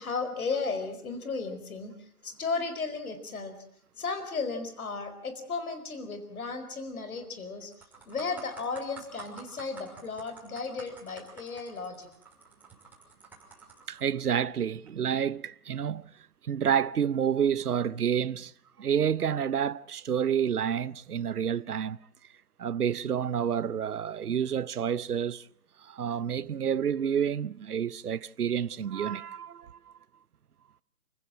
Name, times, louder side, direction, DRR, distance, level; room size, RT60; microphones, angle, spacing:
voice 1, 0.0-1.9 2.2-3.5 4.0-7.7 8.1-12.1, left 4 dB, 70° left, 4.7 m, -34 dB
sound 1, 7.0-7.2 7.6-14.0 14.7-14.9, right 4 dB, 5° right, 6.0 m, -50 dB
voice 2, 13.9-16.1 16.4-18.5 18.8-22.0 22.6-25.5 25.8-29.8, right 8 dB, 80° right, 0.8 m, -29 dB
28.5 x 16.0 x 7.7 m
figure-of-eight pair, 140°, 44 cm